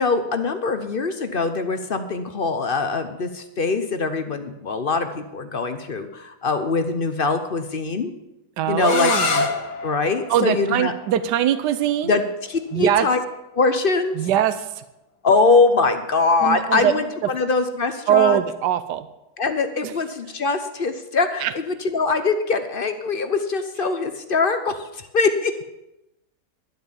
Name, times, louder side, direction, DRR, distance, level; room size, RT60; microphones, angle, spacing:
voice 1, 0.0-8.1 8.7-9.1 9.8-10.9 12.0-12.2 12.5-13.2 13.5-14.2 15.2-18.4 19.4-25.6, left 4 dB, 45° left, 9 dB, 0.8 m, -22 dB
voice 2, 8.6-9.5 10.3-12.2 12.7-13.1 14.2-14.8 16.4-16.9 18.1-19.1 19.8-19.9 21.4-21.5, right 10 dB, 90° right, 13 dB, 1.3 m, -21 dB
sound 1, 8.8-14.5, left 4 dB, 75° left, 1.7 m, -29 dB
11.5 x 7.9 x 7.2 m, 0.90 s
omnidirectional pair, 1.8 m